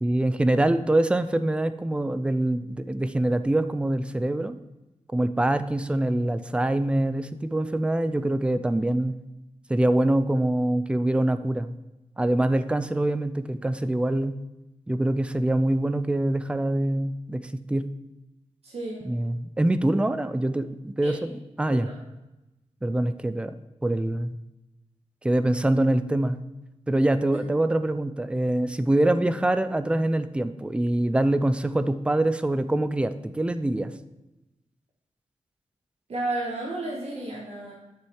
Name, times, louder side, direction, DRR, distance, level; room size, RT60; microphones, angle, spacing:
voice 1, 0.0-4.6 5.1-9.2 9.7-11.7 12.2-14.4 14.9-17.8 19.0-21.3 21.6-21.9 22.8-23.6 23.8-24.4 25.2-26.4 26.9-33.9, right 1 dB, 10° right, 11 dB, 0.4 m, -24 dB
voice 2, 18.6-19.1 21.0-21.2 21.7-22.0 27.3-27.4 36.1-37.7, right 2 dB, 60° right, -3 dB, 1.8 m, -32 dB
10.0 x 6.4 x 4.7 m, 0.99 s
wide cardioid pair, 155°, 12 cm